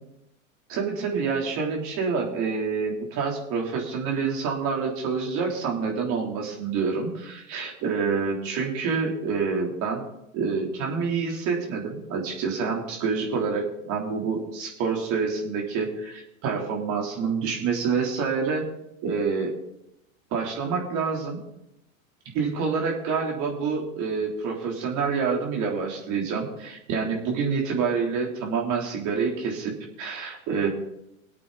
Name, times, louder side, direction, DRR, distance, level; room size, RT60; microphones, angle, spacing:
voice 1, 0.7-10.0 10.3-18.7 19.0-19.5 20.3-21.4 22.3-30.7, right 5 dB, 45° right, 0 dB, 3.7 m, -27 dB
22.0 x 8.5 x 4.1 m, 0.83 s
hypercardioid pair, 100°, 40 cm